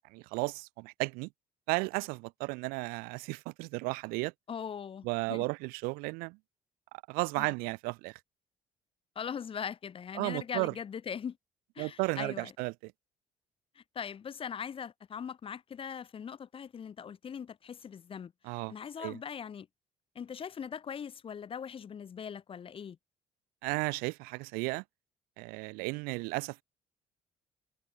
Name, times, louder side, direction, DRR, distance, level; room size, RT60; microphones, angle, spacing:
voice 1, 0.1-1.3 1.7-4.3 5.0-6.4 7.1-8.2 10.2-10.7 11.8-12.9 18.4-18.7 19.0-19.2 23.6-24.8 25.4-26.6, right 27 dB, 85° right, 0.6 m, -34 dB
voice 2, 4.5-5.5 7.4-7.5 9.2-11.4 11.8-12.5 13.8-18.3 18.7-19.7 20.2-23.0, left 7 dB, 40° left, 0.6 m, -40 dB
supercardioid pair, 65°, 15 cm